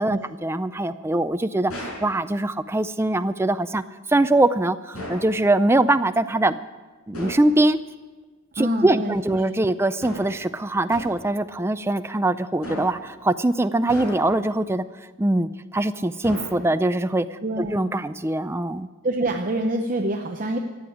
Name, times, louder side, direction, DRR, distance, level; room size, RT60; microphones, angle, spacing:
voice 1, 0.0-1.7 2.0-3.8 4.1-6.6 7.1-7.8 8.6-14.8 15.2-18.9, right 2 dB, 10° right, 11 dB, 0.4 m, -22 dB
sound 1, 1.7-2.1 4.9-5.4 7.1-7.5 10.0-10.4 10.9-11.3 12.6-13.1 13.9-14.5 16.2-16.9, equal, 80° left, 5.3 m, -35 dB
voice 2, 8.6-9.2 9.6-9.7 17.4-17.8 19.0-20.6, right 1 dB, 40° right, 3 dB, 0.7 m, -26 dB
14.0 x 8.8 x 9.9 m, 1.3 s
head